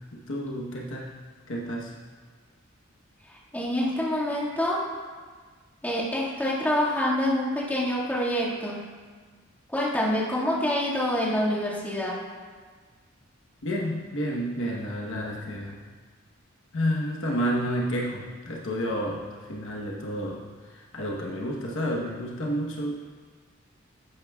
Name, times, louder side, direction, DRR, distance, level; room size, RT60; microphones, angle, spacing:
voice 1, 0.1-1.0 1.5-1.9 13.6-15.8 16.7-20.4 20.7-23.1, equal, 65° left, -2 dB, 1.1 m, -30 dB
voice 2, 3.5-4.8 5.8-8.8 9.7-12.2, left 1 dB, 10° left, -7 dB, 1.9 m, -26 dB
12.5 x 8.8 x 2.4 m, 1.5 s
head